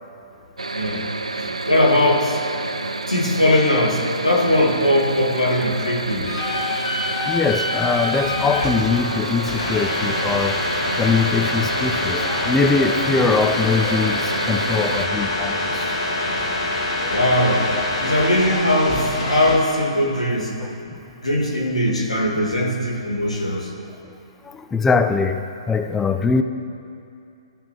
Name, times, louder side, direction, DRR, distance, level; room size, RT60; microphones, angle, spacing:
sound 1, 0.6-15.1, right 3 dB, 80° right, 0.5 m, -29 dB
voice 1, 0.7-1.0 1.7-2.4 3.1-6.3 8.2-8.5 16.2-16.4 17.1-17.7 18.0-20.5 21.2-23.7, left 1 dB, 90° left, -2 dB, 1.8 m, -20 dB
sound 2, 6.3-19.5, left 2 dB, 60° left, 1.9 m, -25 dB
voice 2, 7.3-16.0 17.0-17.1 20.6-21.0 24.4-26.4, left 4 dB, 10° left, 8 dB, 0.3 m, -22 dB
15.0 x 5.9 x 3.1 m, 2.6 s
figure-of-eight pair, 125°, 3 cm